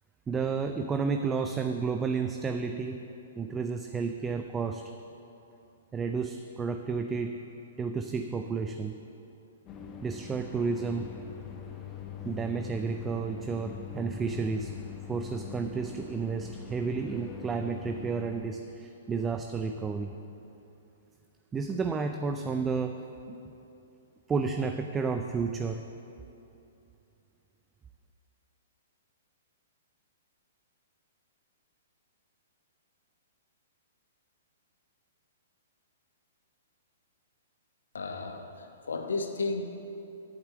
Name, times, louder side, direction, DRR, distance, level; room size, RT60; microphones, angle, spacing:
voice 1, 0.3-3.0 3.4-4.8 5.9-7.4 7.8-9.0 10.0-11.1 12.2-14.7 15.1-20.1 21.5-23.4 24.3-25.9, right 5 dB, 15° right, 6 dB, 0.4 m, -31 dB
sound 1, 9.7-18.5, left 8 dB, 25° left, 0.9 m, -43 dB
voice 2, 37.9-39.7, left 3 dB, 70° left, 5 dB, 1.1 m, -33 dB
8.8 x 8.0 x 7.5 m, 2.8 s
figure-of-eight pair, 115°, 0 cm